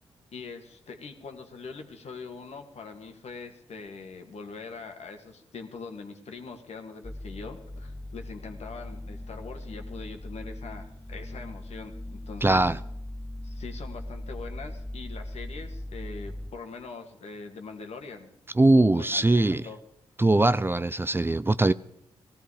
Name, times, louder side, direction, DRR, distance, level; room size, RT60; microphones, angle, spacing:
voice 1, 0.3-12.8 13.4-18.3 18.7-19.8, left 4 dB, 65° left, 2.0 m, -42 dB
sound 1, 7.0-16.5, left 1 dB, 15° left, 3.3 m, -39 dB
voice 2, 12.4-12.8 18.6-19.6 20.2-21.7, right 2 dB, 20° right, 0.5 m, -21 dB
17.5 x 14.0 x 4.9 m
hypercardioid pair, 40°, 12 cm